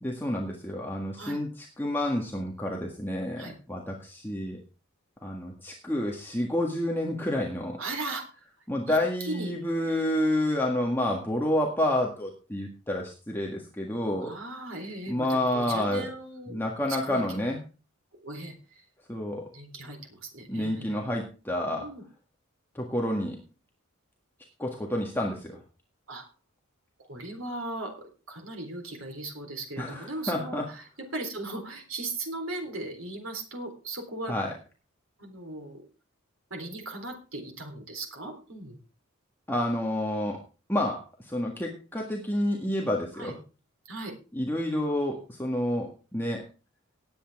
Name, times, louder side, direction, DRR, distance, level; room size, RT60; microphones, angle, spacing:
voice 1, 0.0-4.6 5.2-7.8 8.7-14.3 15.1-16.1 16.5-17.6 19.1-19.5 20.5-21.9 22.7-23.4 24.6-25.6 29.8-30.7 34.3-34.5 39.5-40.4 40.7-43.4 44.3-46.4, left 1 dB, 10° left, -1 dB, 1.6 m, -29 dB
voice 2, 7.8-8.3 8.9-9.5 14.0-16.6 17.0-17.2 18.2-18.8 19.5-21.0 21.7-22.0 26.1-26.3 27.0-30.8 31.1-34.3 35.2-35.8 36.5-38.8 43.2-43.3 43.9-44.1, right 2 dB, 70° right, 3 dB, 3.8 m, -38 dB
18.5 x 8.5 x 3.6 m, 0.33 s
head